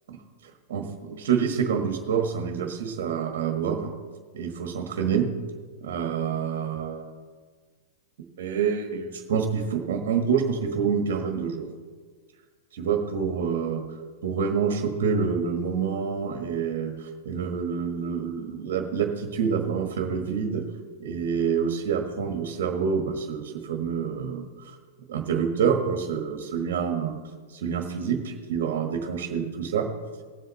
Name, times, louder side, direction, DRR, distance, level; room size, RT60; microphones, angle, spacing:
voice 1, 0.4-3.9 4.3-5.3 5.8-7.1 8.4-11.7 12.7-13.9 14.2-20.6 21.0-24.8 25.1-27.2 27.5-29.9, right 6 dB, 60° right, 3 dB, 1.4 m, -27 dB
18.5 x 7.8 x 3.2 m, 1.5 s
hypercardioid pair, 105°, 0 cm